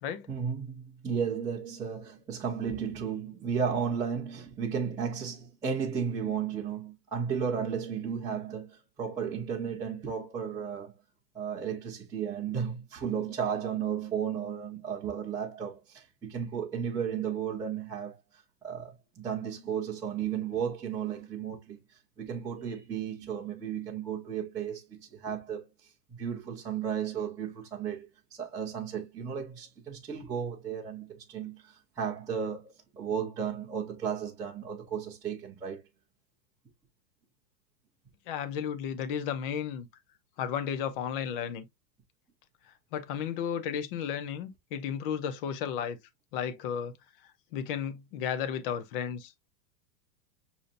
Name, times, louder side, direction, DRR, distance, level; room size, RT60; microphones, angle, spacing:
voice 1, 0.3-11.0 11.3-25.9 26.2-35.8, right 7 dB, 5° right, 0.6 m, -34 dB
voice 2, 38.3-39.9 40.4-41.6 42.9-46.0 46.3-46.9 47.5-49.5, left 8 dB, 35° left, 0.6 m, -33 dB
6.5 x 2.8 x 2.4 m
supercardioid pair, 155°, 50 cm